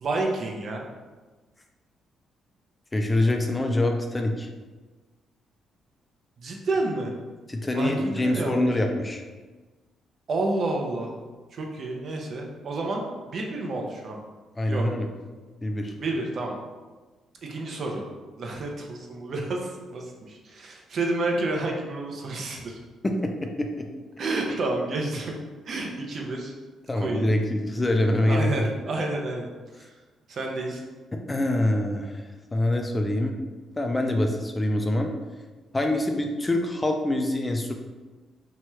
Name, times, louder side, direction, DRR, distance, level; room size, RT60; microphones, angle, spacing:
voice 1, 0.0-0.8 6.4-7.1 7.7-8.7 10.3-11.1 11.5-14.2 14.7-14.8 16.0-16.5 17.4-18.0 18.4-22.8 24.2-25.3 25.7-26.5 27.0-27.3 28.2-29.5 30.3-30.8, right 2 dB, 55° right, 1 dB, 0.5 m, -30 dB
voice 2, 2.9-4.5 7.5-9.2 14.6-15.1 15.6-15.9 23.0-23.9 26.9-28.7 31.3-32.2 32.5-33.4 33.8-35.1 35.7-37.7, left 1 dB, 20° left, 3 dB, 0.3 m, -25 dB
2.8 x 2.3 x 3.0 m, 1.3 s
cardioid pair, 90°, 0 cm